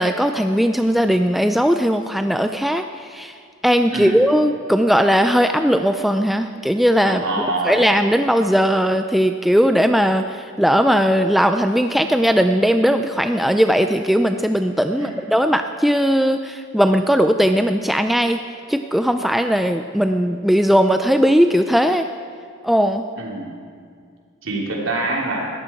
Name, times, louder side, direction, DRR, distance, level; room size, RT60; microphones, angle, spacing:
voice 1, 0.0-3.4 3.6-18.4 18.7-22.1 22.6-23.1, equal, ahead, 7 dB, 0.3 m, -18 dB
voice 2, 7.0-7.8 14.9-15.1 23.2-23.5 24.4-25.5, right 2 dB, 65° right, -1 dB, 3.1 m, -25 dB
20.0 x 14.5 x 4.4 m, 2.1 s
head